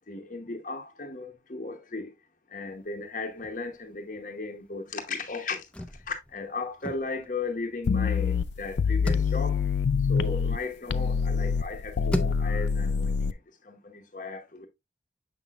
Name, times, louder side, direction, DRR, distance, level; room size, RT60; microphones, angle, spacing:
voice 1, 0.1-2.1 2.5-5.6 6.1-9.6 10.1-13.3 13.7-14.7, left 3 dB, 45° left, 0.9 m, -36 dB
sound 1, 2.7-4.0 4.2-4.3 4.6-11.0 11.5-12.7, left 1 dB, 5° left, 0.5 m, -38 dB
sound 2, 7.9-10.6 10.9-13.3, left 5 dB, 75° left, 0.4 m, -26 dB
7.0 x 5.8 x 2.4 m
head